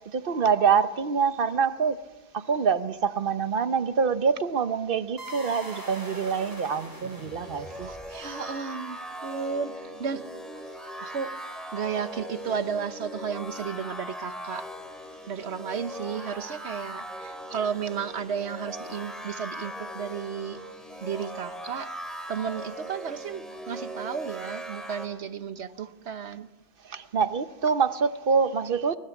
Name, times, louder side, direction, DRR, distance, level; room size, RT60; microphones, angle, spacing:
voice 1, 0.1-2.0 2.3-7.9 26.9-29.0, right 6 dB, 60° right, 1.1 m, -25 dB
sound 1, 5.2-8.3, equal, 20° right, 6.0 m, -41 dB
sound 2, 7.1-25.1, equal, ahead, 2.9 m, -39 dB
voice 2, 7.5-10.3 11.0-11.3 11.7-14.7 15.3-20.6 21.0-21.9 22.3-26.5, right 7 dB, 90° right, 1.3 m, -33 dB
25.0 x 20.0 x 7.2 m
omnidirectional pair, 1.1 m